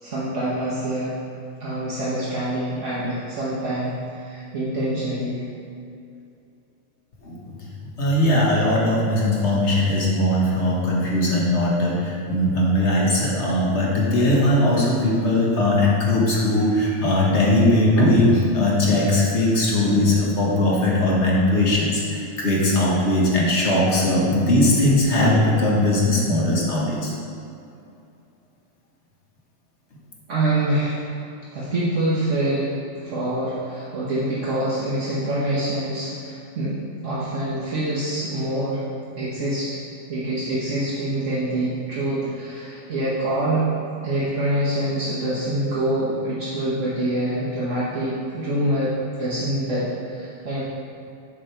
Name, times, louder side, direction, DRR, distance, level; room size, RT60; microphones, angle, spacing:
voice 1, 0.0-1.2 1.6-5.4 30.3-31.0 31.5-38.8 39.2-39.8 40.1-43.7 44.0-50.6, right 1 dB, 65° right, -9 dB, 1.4 m, -25 dB
voice 2, 7.2-7.5 8.0-27.1, left 1 dB, 55° left, -4 dB, 1.5 m, -19 dB
6.7 x 5.1 x 4.4 m, 2.6 s
omnidirectional pair, 1.4 m